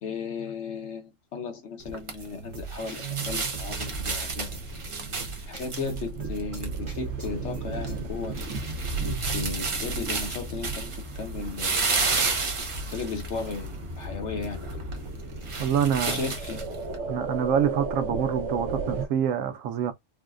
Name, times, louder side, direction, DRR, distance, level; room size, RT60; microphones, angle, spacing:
voice 1, 0.0-4.5 5.5-8.4 9.0-11.9 12.9-14.7 16.1-16.6, left 5 dB, 65° left, 1.1 m, -35 dB
sound 1, 1.8-17.0, right 3 dB, 40° right, 0.4 m, -33 dB
sound 2, 2.2-8.0, right 7 dB, 25° right, 1.0 m, -38 dB
sound 3, 3.7-19.1, right 3 dB, 70° right, 1.0 m, -36 dB
voice 2, 15.6-16.2 17.1-19.9, right 8 dB, 90° right, 1.0 m, -26 dB
3.9 x 2.2 x 2.4 m
omnidirectional pair, 1.3 m